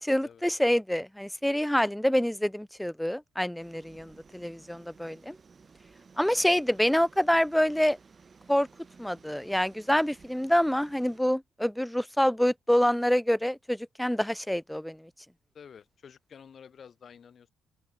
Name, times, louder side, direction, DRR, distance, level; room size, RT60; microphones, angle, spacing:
voice 1, 0.0-5.4 6.2-8.0 8.5-8.7 9.0-15.1, equal, 5° left, 0.5 m, -26 dB
sound 1, 3.6-11.2, right 5 dB, 35° right, 3.8 m, -56 dB
voice 2, 15.5-17.5, left 7 dB, 50° left, 5.1 m, -50 dB
open air
cardioid pair, 90°, 0 cm